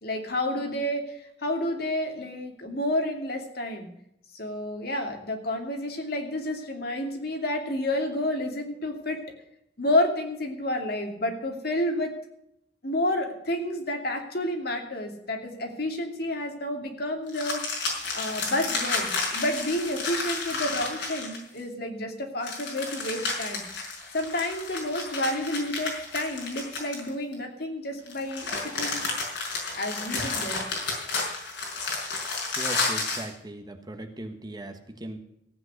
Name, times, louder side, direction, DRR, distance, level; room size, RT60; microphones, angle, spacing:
voice 1, 0.0-3.9 4.3-9.2 9.8-12.1 12.8-23.6 24.1-29.0 29.7-30.6, left 1 dB, 60° left, 3 dB, 2.7 m, -30 dB
sound 1, 17.3-21.6 22.4-27.3 28.1-33.3, left 3 dB, 85° left, 5.5 m, -31 dB
voice 2, 32.6-35.2, right 1 dB, 25° right, 6 dB, 1.3 m, -39 dB
15.5 x 9.2 x 6.5 m, 0.77 s
head